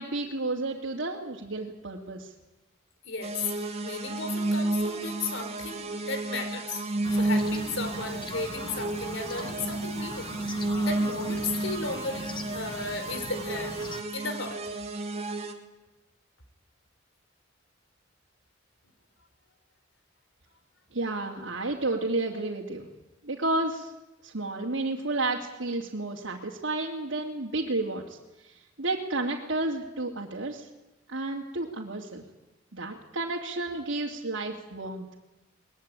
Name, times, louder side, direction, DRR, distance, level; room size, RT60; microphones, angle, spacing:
voice 1, 0.0-2.3 20.9-22.9 23.2-23.9 24.2-30.7 31.1-32.2 32.7-35.1, right 2 dB, 75° right, -2 dB, 2.6 m, -31 dB
voice 2, 3.0-3.5 3.8-6.8 7.1-10.3 10.8-13.7 14.1-14.6, left 3 dB, 75° left, 8 dB, 4.4 m, -35 dB
sound 1, 3.2-15.5, right 2 dB, 35° right, 2.5 m, -31 dB
sound 2, 7.0-14.0, left 2 dB, 25° left, 1.7 m, -41 dB
21.5 x 21.0 x 9.0 m, 0.99 s
head